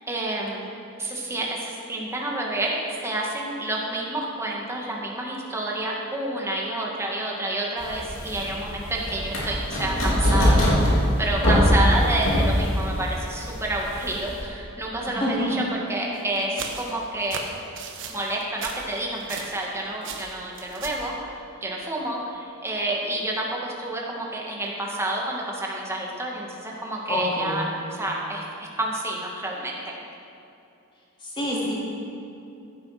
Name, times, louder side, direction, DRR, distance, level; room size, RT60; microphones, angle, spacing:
voice 1, 0.1-0.7 1.0-17.5 18.1-29.9, right 1 dB, 10° right, -2 dB, 1.9 m, -29 dB
sound 1, 7.8-14.4, equal, 65° left, 3.3 m, -22 dB
voice 2, 15.1-15.5 27.1-27.7 31.2-31.7, left 1 dB, 25° left, -6 dB, 3.5 m, -27 dB
sound 2, 16.1-19.7 20.0-21.1, right 5 dB, 60° right, 1.3 m, -37 dB
15.5 x 9.0 x 6.0 m, 2.7 s
head